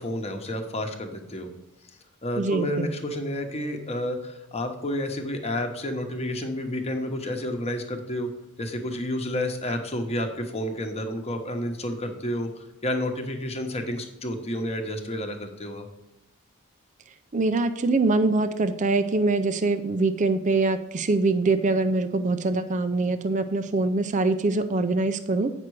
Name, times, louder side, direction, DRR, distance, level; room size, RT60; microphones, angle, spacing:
voice 1, 0.0-1.5 2.2-8.3 8.6-15.9, left 1 dB, 30° left, 4 dB, 1.1 m, -30 dB
voice 2, 2.4-2.9 17.3-25.5, right 3 dB, 35° right, 10 dB, 0.5 m, -24 dB
8.8 x 6.0 x 4.7 m, 0.95 s
head